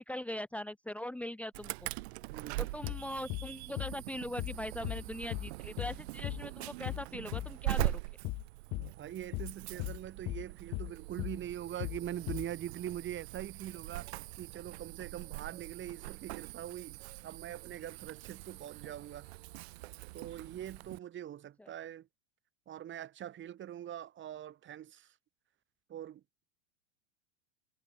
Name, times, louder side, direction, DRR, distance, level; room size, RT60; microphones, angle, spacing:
voice 1, 0.0-1.9 2.6-8.0 21.6-21.7, left 1 dB, 5° left, 1.3 m, -41 dB
Insect / Alarm, 1.5-21.0, right 21 dB, 60° right, 4.1 m, -42 dB
voice 2, 2.3-2.6 8.8-19.3 20.1-22.1 22.7-25.1 25.9-26.4, right 11 dB, 35° right, 2.5 m, -43 dB
sound 1, 2.8-3.0 3.3-3.5 3.8-4.0 4.4-4.6 4.8-5.0 5.3-5.5 5.8-6.0 6.2-6.4 6.8-7.0 7.3-7.5 7.8-8.0 8.2-8.4 8.7-8.9 9.3-9.5 9.8-10.0 10.3-10.5 10.7-10.9 11.2-11.4 11.8-12.0 12.3-12.5, left 23 dB, 45° left, 1.9 m, -37 dB
hypercardioid pair, 95°, 35 cm